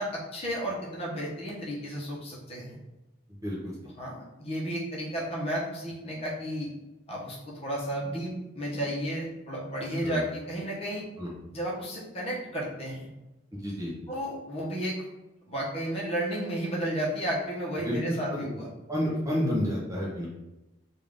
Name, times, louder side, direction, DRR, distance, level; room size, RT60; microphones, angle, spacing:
voice 1, 0.0-2.8 4.0-6.7 7.1-11.0 11.5-13.1 14.1-15.0 15.5-18.7, right 1 dB, 30° left, -4 dB, 0.9 m, -33 dB
voice 2, 3.4-3.7 10.0-10.2 11.2-11.3 13.5-13.9 17.8-18.5 18.9-20.3, equal, 15° right, -5 dB, 0.7 m, -30 dB
3.5 x 2.5 x 3.4 m, 0.99 s
head